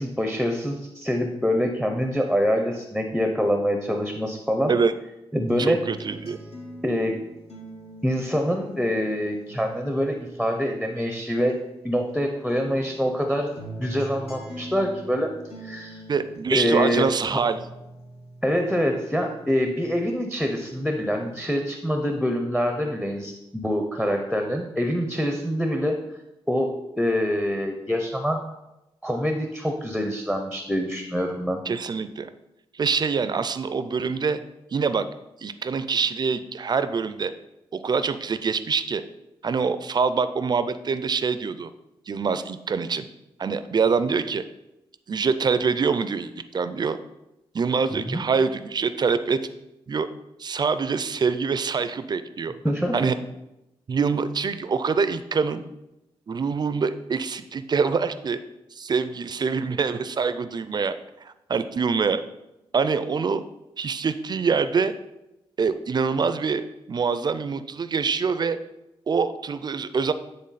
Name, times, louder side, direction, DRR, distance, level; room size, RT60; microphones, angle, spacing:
voice 1, 0.0-4.7 5.3-5.8 6.8-7.2 8.0-11.6 11.8-13.5 13.8-15.3 15.6-16.0 16.5-17.4 18.4-26.0 26.5-28.4 29.0-31.6 47.9-48.2 52.6-53.1, equal, ahead, 4 dB, 0.7 m, -25 dB
sound 1, 5.5-12.1 12.5-20.1 20.5-21.5, right 1 dB, 70° left, 1.6 m, -43 dB
voice 2, 5.6-6.4 16.1-17.6 31.7-32.3 32.7-34.4 34.7-35.1 35.4-37.3 37.7-39.0 39.4-41.7 42.1-43.1 43.4-44.4 45.1-47.0 47.5-49.4 49.9-50.1 50.4-52.5 52.9-53.1 53.9-55.6 56.3-58.4 58.7-60.9 61.2-62.2 62.7-63.4 63.8-64.9 65.6-68.6 69.1-70.1, right 5 dB, 40° right, 12 dB, 0.4 m, -25 dB
9.6 x 3.5 x 4.1 m, 0.93 s
cardioid pair, 90°, 11 cm